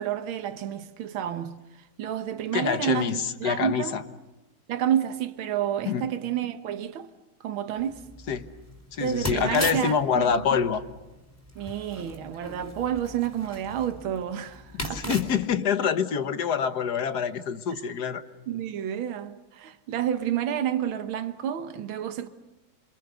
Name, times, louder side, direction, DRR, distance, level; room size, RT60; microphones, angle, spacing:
voice 1, 0.0-1.6 2.0-4.0 4.7-7.1 7.4-8.0 9.0-10.3 11.6-15.1 17.7-17.8 18.5-22.3, right 10 dB, 80° right, 1.9 m, -30 dB
voice 2, 2.5-4.0 5.8-6.1 8.3-8.5 8.9-10.8 14.8-18.2, left 7 dB, 55° left, 1.6 m, -26 dB
sound 1, 7.8-15.5, left 1 dB, 5° left, 3.8 m, -39 dB
28.5 x 26.5 x 6.8 m
omnidirectional pair, 2.2 m